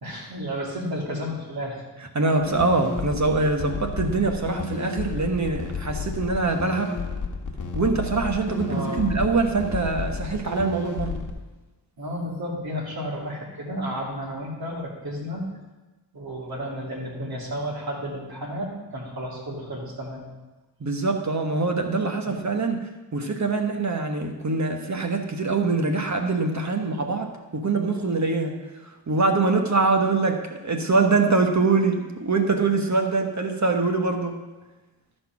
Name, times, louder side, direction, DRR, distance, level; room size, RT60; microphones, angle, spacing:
voice 1, 0.0-1.8 8.7-9.0 12.0-15.4 16.1-20.2 22.2-22.4, equal, 55° right, -2 dB, 2.9 m, -32 dB
voice 2, 2.1-6.9 7.7-11.2 20.8-28.5 28.8-34.4, right 3 dB, 40° right, 4 dB, 1.2 m, -24 dB
sound 1, 2.4-11.3, left 5 dB, 45° left, 1.2 m, -32 dB
13.0 x 4.5 x 5.9 m, 1.1 s
cardioid pair, 60°, 43 cm